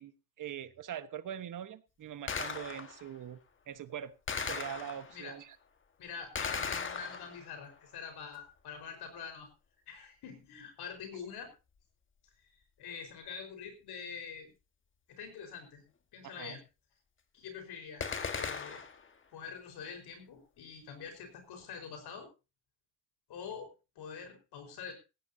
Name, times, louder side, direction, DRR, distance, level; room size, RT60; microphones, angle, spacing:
voice 1, 0.0-3.4 3.7-4.1 4.4-5.6 16.2-16.6, right 10 dB, 55° right, 12 dB, 1.3 m, -43 dB
Gunshot gunfire, 2.3-3.1 4.3-5.3 6.3-7.6 18.0-19.1, left 5 dB, 30° left, 1.5 m, -37 dB
voice 2, 6.0-9.5 9.9-11.5 12.4-12.5 12.8-14.5 15.1-15.8 16.1-16.6 17.3-18.8 19.3-22.3 23.3-24.9, left 6 dB, 75° left, 5 dB, 4.6 m, -45 dB
18.0 x 16.0 x 2.7 m, 0.30 s
cardioid pair, 140°, 39 cm